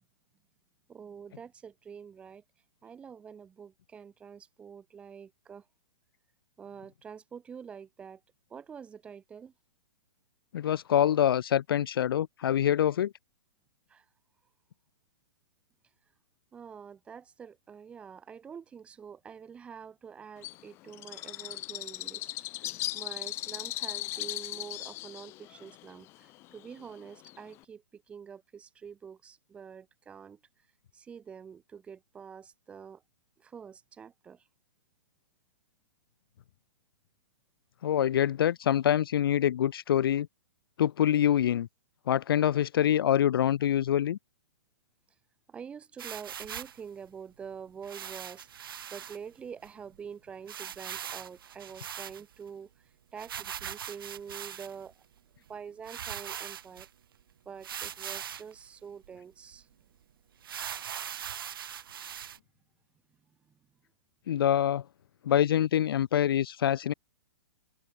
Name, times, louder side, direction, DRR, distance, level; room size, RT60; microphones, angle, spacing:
voice 1, 0.9-2.4 2.8-5.6 6.6-8.2 8.5-9.5 13.9-14.0 16.5-22.3 22.6-30.4 30.9-33.0 33.4-34.4 45.5-48.5 48.9-52.7 53.1-54.9 55.5-56.9 57.5-59.7, right 7 dB, 10° right, 1.8 m, -46 dB
voice 2, 10.5-13.1 37.8-40.3 40.8-41.7 42.1-44.2 64.3-64.8 65.3-66.9, left 10 dB, 65° left, 0.4 m, -25 dB
Bird, 20.4-27.6, left 19 dB, 20° left, 1.6 m, -38 dB
sound 1, 46.0-46.8 47.8-49.2 49.6-49.7 49.9-50.0 50.5-52.5 53.2-54.9 55.5-55.6 55.8-56.9 57.6-58.5 59.0-59.1 59.5-59.6 60.4-62.4, right 9 dB, 65° right, 2.8 m, -40 dB
open air
hypercardioid pair, 170°, 13 cm